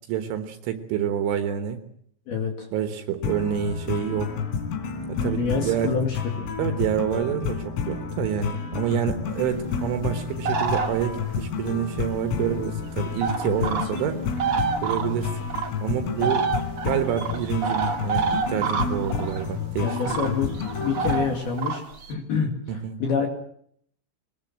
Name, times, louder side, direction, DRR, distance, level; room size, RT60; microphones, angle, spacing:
voice 1, 0.1-1.8 2.7-4.3 5.2-5.9 6.6-14.2 14.8-15.3 15.8-16.5 16.9-20.2 22.8-23.0, right 9 dB, 75° right, 7 dB, 3.7 m, -27 dB
voice 2, 2.3-2.7 5.2-6.5 12.4-12.6 13.6-13.8 16.2-16.3 19.8-20.5 20.8-21.8 22.1-23.3, left 5 dB, 55° left, 1 dB, 3.9 m, -27 dB
sound 1, 3.2-21.4, left 6 dB, 85° left, 5.9 m, -30 dB
sound 2, 10.4-11.3 12.6-12.7 13.2-14.0 14.3-15.7 16.2-19.5 19.9-22.1, right 5 dB, 40° right, 2.7 m, -27 dB
24.0 x 19.5 x 7.5 m, 0.67 s
omnidirectional pair, 5.9 m